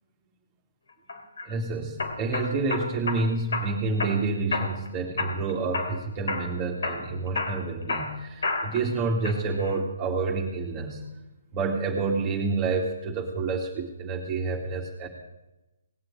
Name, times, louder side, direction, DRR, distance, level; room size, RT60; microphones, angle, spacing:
sound 1, 1.1-1.5 2.0-3.2 3.5-4.2 4.5-4.9 5.2-6.0 6.3-6.5 6.8-8.9 9.2-9.8, left 3 dB, 80° left, 3.3 m, -30 dB
voice 1, 1.4-11.0 11.5-15.1, right 3 dB, 25° right, -2 dB, 2.5 m, -28 dB
19.5 x 7.6 x 8.9 m, 0.99 s
hypercardioid pair, 150°, 0 cm